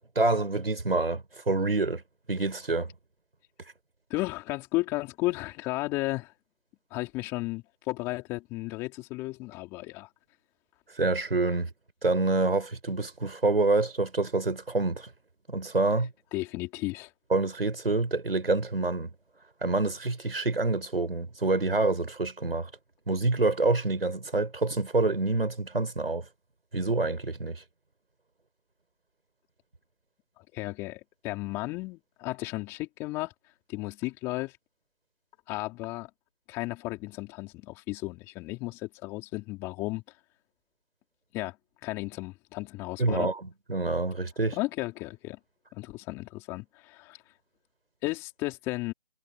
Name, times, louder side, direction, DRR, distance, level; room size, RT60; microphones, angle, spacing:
voice 1, 0.2-2.0 2.3-2.9 11.0-11.7 12.0-15.1 15.5-16.1 17.3-19.1 19.6-22.7 23.1-26.3 26.7-27.6 43.0-43.4 43.7-44.6, right 3 dB, 65° right, 5.8 m, -27 dB
voice 2, 4.1-6.3 6.9-10.1 16.3-17.1 30.4-33.3 33.7-34.5 35.5-36.1 36.5-40.0 41.3-41.6 41.8-43.3 44.5-45.4 45.7-47.2 48.0-48.9, left 21 dB, 10° left, 4.6 m, -34 dB
figure-of-eight pair, 165°, 31 cm